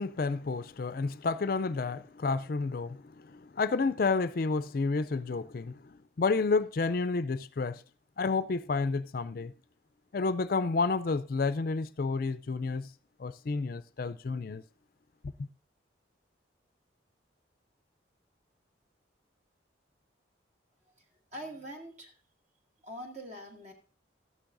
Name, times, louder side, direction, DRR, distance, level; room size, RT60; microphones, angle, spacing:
voice 1, 0.0-7.8 8.2-9.5 10.1-12.9 13.2-14.6 15.4-15.5, left 4 dB, 50° left, 0.4 m, -30 dB
voice 2, 21.3-22.2 22.8-23.7, equal, 35° right, 2.1 m, -43 dB
14.0 x 11.5 x 2.6 m
head